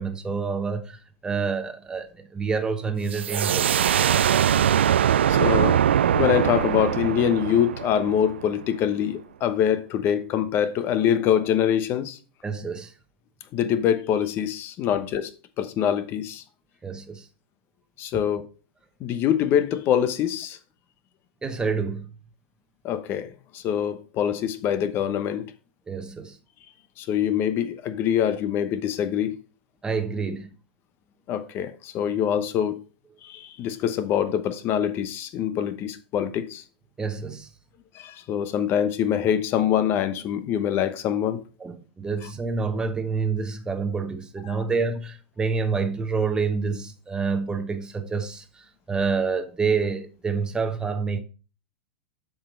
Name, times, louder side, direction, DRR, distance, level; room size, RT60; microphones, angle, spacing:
voice 1, 0.0-4.0 12.4-12.9 16.8-17.2 21.4-22.1 25.9-26.4 29.8-30.5 37.0-37.5 41.6-51.2, right 5 dB, 15° right, 1.1 m, -28 dB
sound 1, 3.1-8.6, right 9 dB, 85° right, 0.3 m, -22 dB
voice 2, 5.3-5.8 6.1-12.2 13.5-15.3 15.6-16.4 18.0-18.4 19.0-20.6 22.8-25.5 27.0-29.4 31.3-32.8 33.2-36.6 37.9-41.4 42.2-42.3 44.5-44.6, left 9 dB, 40° left, 0.9 m, -24 dB
7.3 x 4.9 x 5.1 m
hypercardioid pair, 110°, 6 cm